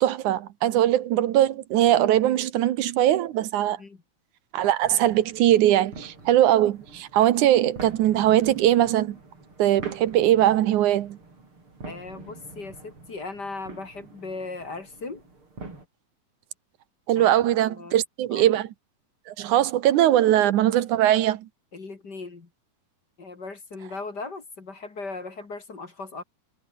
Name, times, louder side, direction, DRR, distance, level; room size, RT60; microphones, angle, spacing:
voice 1, 0.0-3.8 4.5-9.2 9.6-11.2 17.1-18.7 19.3-21.5, right 12 dB, 75° right, 2.5 m, -21 dB
sound 1, 4.8-15.8, right 3 dB, 40° right, 7.2 m, -45 dB
voice 2, 11.8-15.3 17.1-18.0 18.3-18.5 21.7-22.5 23.2-26.2, left 3 dB, 35° left, 2.9 m, -38 dB
omnidirectional pair, 3.5 m